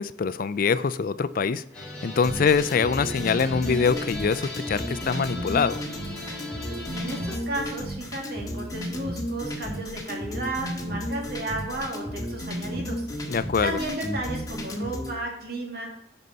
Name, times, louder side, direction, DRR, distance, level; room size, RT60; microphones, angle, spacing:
voice 1, 0.0-1.6 2.0-5.8 13.3-13.8, left 5 dB, 50° left, 14 dB, 0.4 m, -24 dB
sound 1, 1.7-7.4, left 2 dB, 5° left, 2.3 m, -39 dB
sound 2, 2.2-15.1, equal, 20° left, 1.7 m, -33 dB
voice 2, 6.9-15.9, right 2 dB, 60° right, 0 dB, 2.3 m, -34 dB
8.0 x 5.4 x 5.6 m, 0.79 s
head